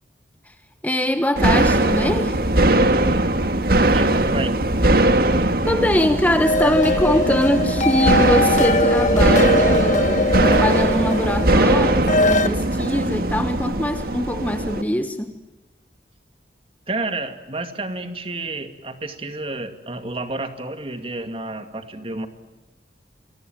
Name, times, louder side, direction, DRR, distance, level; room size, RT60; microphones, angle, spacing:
voice 1, 0.8-2.4 5.7-15.4, left 1 dB, 10° left, 1.3 m, -23 dB
sound 1, 1.4-14.8, right 1 dB, 55° right, 1.7 m, -20 dB
voice 2, 3.9-4.5 16.9-22.3, right 2 dB, 30° right, 2.3 m, -30 dB
sound 2, 6.4-12.5, left 2 dB, 40° left, 1.5 m, -21 dB
28.5 x 23.0 x 9.2 m
head